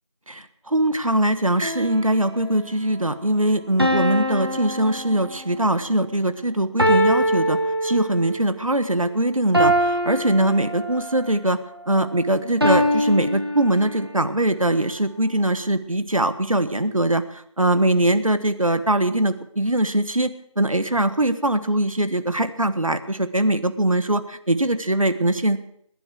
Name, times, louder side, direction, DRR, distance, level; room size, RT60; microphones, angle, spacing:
voice 1, 0.3-11.6 11.9-25.6, right 1 dB, 80° right, 12 dB, 1.4 m, -22 dB
sound 1, 1.6-2.4 3.8-5.6 6.8-8.4 9.5-11.2 12.6-14.2, equal, 45° right, 1.8 m, -23 dB
20.0 x 11.0 x 4.8 m, 0.72 s
figure-of-eight pair, 180°, 17 cm